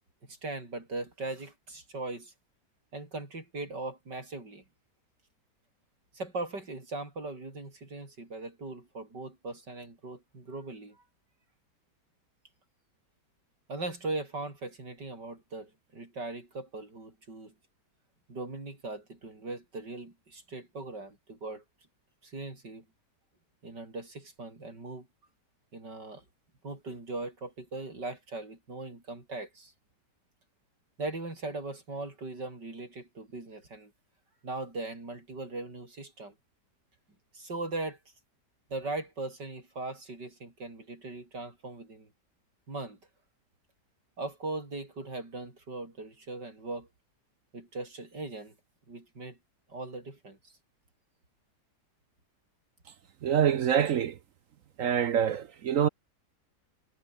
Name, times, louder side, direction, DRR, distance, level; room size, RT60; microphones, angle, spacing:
voice 1, 0.2-2.3 2.9-4.6 6.1-11.0 13.7-17.5 18.3-21.6 22.2-22.8 23.6-25.1 25.7-26.2 26.6-29.7 31.0-33.9 34.4-36.3 37.3-38.0 38.7-42.1 42.7-43.0 44.2-46.9 47.5-48.5 48.9-49.4 49.7-50.5, right 2 dB, 90° right, 6.8 m, -39 dB
voice 2, 53.2-54.1 54.8-55.9, right 9 dB, 60° right, 1.0 m, -25 dB
omnidirectional pair, 1.8 m